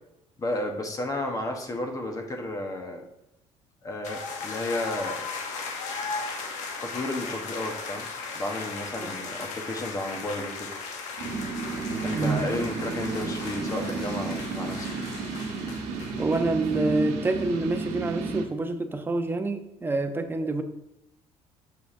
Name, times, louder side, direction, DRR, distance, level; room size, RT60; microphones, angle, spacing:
voice 1, 0.4-3.0 3.8-5.3 6.8-8.1 8.3-10.7 12.0-14.9, left 1 dB, 30° left, 3 dB, 1.1 m, -32 dB
sound 1, 4.0-16.7, left 4 dB, 75° left, 1.0 m, -37 dB
sound 2, 11.2-18.5, right 4 dB, 85° right, 1.1 m, -32 dB
voice 2, 16.2-20.6, right 2 dB, 20° right, 7 dB, 0.7 m, -27 dB
6.6 x 5.4 x 2.6 m, 0.89 s
cardioid pair, 105°, 12 cm